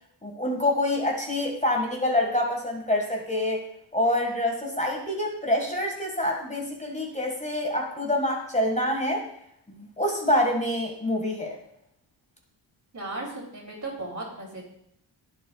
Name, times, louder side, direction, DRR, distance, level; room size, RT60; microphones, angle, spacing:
voice 1, 0.2-3.6 3.9-9.2 9.7-11.6, left 1 dB, 15° left, 1 dB, 1.8 m, -26 dB
voice 2, 12.9-14.6, right 2 dB, 40° right, -1 dB, 3.0 m, -36 dB
11.5 x 7.9 x 2.4 m, 0.72 s
cardioid pair, 60°, 45 cm